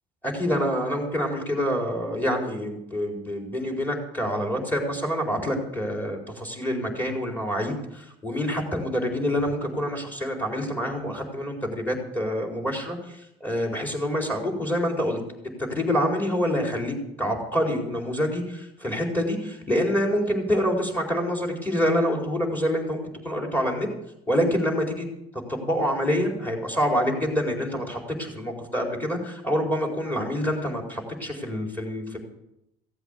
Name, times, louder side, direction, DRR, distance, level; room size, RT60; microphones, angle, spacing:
voice 1, 0.2-15.2 15.6-23.9 24.3-25.1 25.5-32.2, equal, 10° left, 1 dB, 4.5 m, -26 dB
16.0 x 8.1 x 8.2 m, 0.84 s
supercardioid pair, 95°, 17 cm